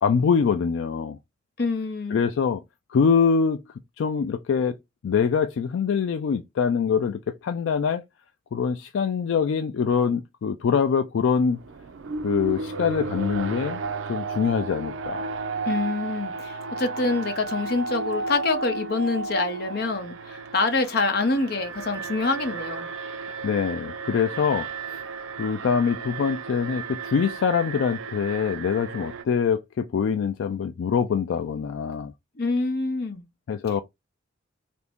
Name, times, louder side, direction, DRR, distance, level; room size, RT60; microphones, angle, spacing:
voice 1, 0.0-1.2 2.1-2.6 2.9-3.6 4.0-4.8 5.0-8.0 8.5-11.6 12.2-13.8 14.1-15.2 23.2-25.0 25.4-32.1 33.5-33.8, left 6 dB, 80° left, 0.3 m, -24 dB
voice 2, 1.6-2.2 15.7-22.9 32.4-33.2, left 3 dB, 55° left, 0.7 m, -26 dB
Alarm, 11.3-29.2, right 4 dB, 90° right, 0.4 m, -33 dB
2.8 x 2.6 x 3.4 m
head